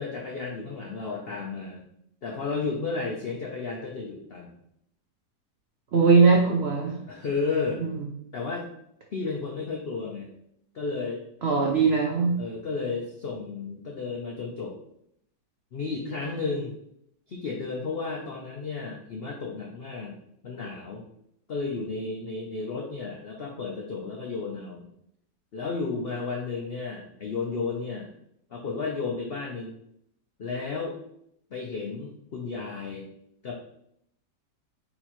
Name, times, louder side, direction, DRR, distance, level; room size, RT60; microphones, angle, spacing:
voice 1, 0.0-1.8 2.2-4.6 7.1-7.8 8.3-8.7 9.1-10.3 10.7-11.2 12.4-14.7 15.7-16.7 17.3-20.1 20.4-21.0 21.5-24.9 25.5-28.1 28.5-29.8 30.4-31.0 31.5-33.1 33.4-33.5, left 4 dB, 80° left, -1 dB, 0.5 m, -33 dB
voice 2, 5.9-7.0 7.8-8.0 11.4-12.3, right 4 dB, 85° right, 0 dB, 0.5 m, -20 dB
4.1 x 2.9 x 4.3 m, 0.72 s
omnidirectional pair, 1.9 m